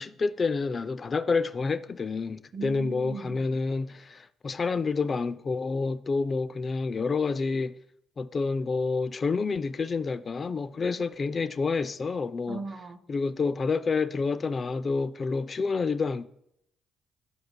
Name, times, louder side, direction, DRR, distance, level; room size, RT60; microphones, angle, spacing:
voice 1, 0.0-7.7 8.2-12.6 13.1-16.3, left 4 dB, 40° left, 0.3 m, -28 dB
voice 2, 2.5-3.4 12.5-13.0, right 5 dB, 45° right, 0.8 m, -38 dB
8.1 x 7.6 x 2.3 m
hypercardioid pair, 55°, 0 cm